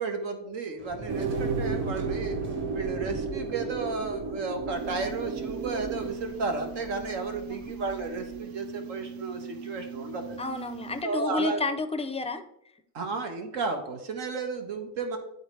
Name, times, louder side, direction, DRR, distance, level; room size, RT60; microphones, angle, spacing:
voice 1, 0.0-2.4 2.7-10.4 11.0-11.6 12.9-15.2, right 4 dB, 75° right, 6 dB, 1.3 m, -33 dB
Waves surf, 0.8-8.4, right 1 dB, 25° right, 1.4 m, -46 dB
sound 1, 1.1-6.1, right 4 dB, 90° right, 1.0 m, -32 dB
sound 2, 4.8-11.0, right 6 dB, 55° right, 0.6 m, -41 dB
voice 2, 10.4-12.4, left 3 dB, 15° left, 8 dB, 0.4 m, -30 dB
11.0 x 4.0 x 3.2 m, 0.78 s
cardioid pair, 120°, 44 cm